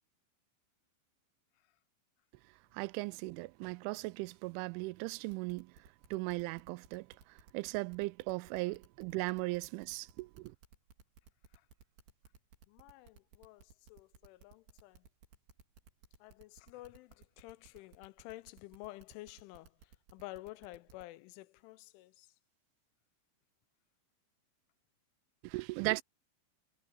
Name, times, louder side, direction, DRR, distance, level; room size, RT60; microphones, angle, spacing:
voice 1, 2.7-5.7 6.1-7.1 7.5-10.5 25.4-26.0, right 23 dB, 90° right, 3.0 m, -37 dB
sound 1, 5.3-21.0, right 5 dB, 65° right, 5.8 m, -59 dB
voice 2, 12.7-15.1 16.2-22.3, left 19 dB, 90° left, 3.2 m, -51 dB
omnidirectional pair, 5.4 m